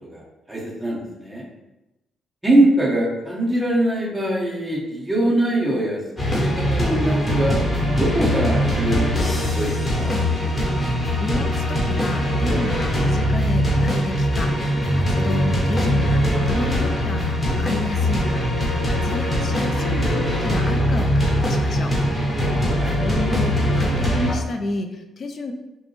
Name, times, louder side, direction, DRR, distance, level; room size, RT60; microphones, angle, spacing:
voice 1, 0.5-1.4 2.4-6.0 6.3-7.6 8.0-10.1 22.4-23.0, right 1 dB, 10° right, -5 dB, 1.3 m, -22 dB
sound 1, 6.2-24.3, equal, 15° left, 1.1 m, -21 dB
voice 2, 10.9-21.9 22.9-25.5, left 2 dB, 45° left, 5 dB, 0.5 m, -30 dB
5.0 x 2.1 x 3.2 m, 0.98 s
cardioid pair, 90°, 0 cm